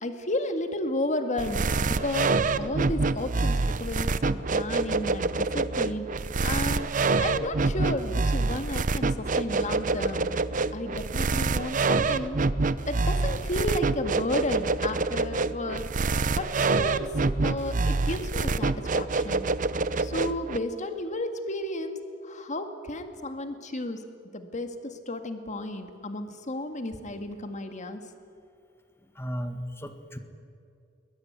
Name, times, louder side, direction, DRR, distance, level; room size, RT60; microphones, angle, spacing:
voice 1, 0.0-6.1 6.4-6.9 7.2-10.3 10.7-12.4 12.9-15.9 16.4-17.1 17.4-19.5 20.0-24.0 24.3-28.0, left 1 dB, 40° left, 7 dB, 2.0 m, -33 dB
sound 1, 1.4-20.6, right 3 dB, 45° right, 0.7 m, -26 dB
voice 2, 29.2-30.2, equal, 15° left, 8 dB, 1.8 m, -35 dB
21.5 x 21.0 x 9.6 m, 2.4 s
head